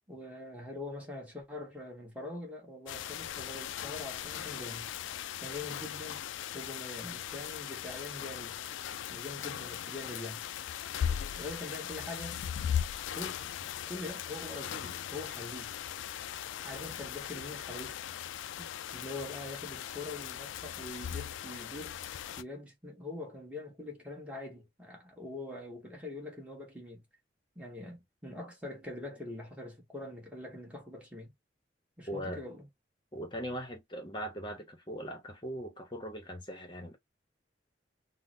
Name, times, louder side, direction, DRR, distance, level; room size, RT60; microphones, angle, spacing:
voice 1, 0.1-4.9 5.4-6.2 6.5-8.6 9.1-10.4 11.4-12.4 13.1-13.4 13.9-15.7 16.6-18.0 18.6-21.9 22.4-27.0 27.5-31.3 32.0-32.7, left 2 dB, 5° right, 1.2 m, -43 dB
sound 1, 2.9-22.4, left 9 dB, 85° left, 0.3 m, -39 dB
voice 2, 32.1-32.4 33.1-37.0, equal, 25° left, 0.8 m, -40 dB
3.7 x 2.1 x 2.6 m
head